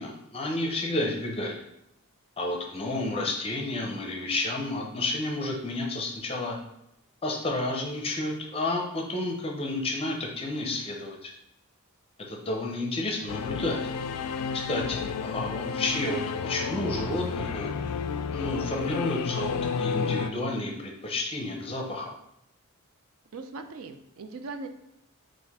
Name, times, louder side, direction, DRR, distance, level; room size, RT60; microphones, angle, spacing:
voice 1, 0.0-1.6 2.4-6.6 7.2-11.3 12.3-13.8 14.5-17.7 18.3-22.1, left 2 dB, 25° left, 1 dB, 0.5 m, -31 dB
Singing / Musical instrument, 13.3-20.3, left 5 dB, 85° left, 0.3 m, -31 dB
voice 2, 23.3-24.7, right 3 dB, 65° right, 7 dB, 0.5 m, -39 dB
4.1 x 2.5 x 4.1 m, 0.82 s
head